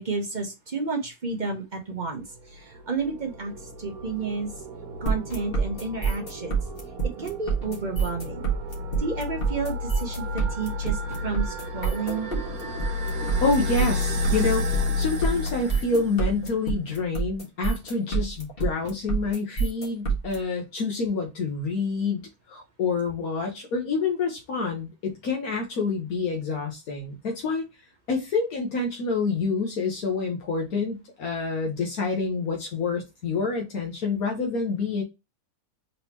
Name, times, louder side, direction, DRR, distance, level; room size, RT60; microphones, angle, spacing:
voice 1, 0.0-2.2 2.5-3.5 3.8-4.5 5.0-6.5 7.0-8.4 9.0-10.2 10.5-12.3, right 4 dB, 35° right, 0.9 m, -31 dB
sound 1, 2.3-16.5, left 3 dB, 75° right, 1.4 m, -32 dB
sound 2, 5.1-20.4, right 5 dB, 40° left, 1.8 m, -27 dB
voice 2, 13.4-27.6 28.1-35.0, left 4 dB, 75° left, 1.5 m, -27 dB
4.1 x 3.7 x 2.9 m
omnidirectional pair, 1.6 m